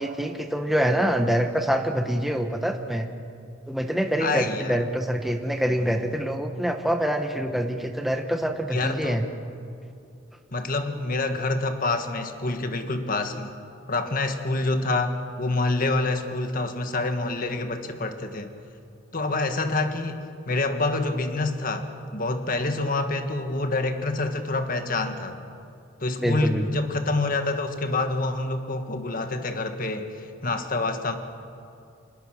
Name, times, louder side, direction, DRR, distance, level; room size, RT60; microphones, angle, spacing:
voice 1, 0.0-3.1 3.7-9.3 26.2-26.7, equal, ahead, 5 dB, 1.0 m, -25 dB
voice 2, 4.2-4.8 8.7-9.2 10.5-13.5 13.9-18.5 19.1-25.4 26.0-31.1, left 2 dB, 45° left, 7 dB, 1.6 m, -27 dB
26.5 x 21.0 x 6.4 m, 2.5 s
head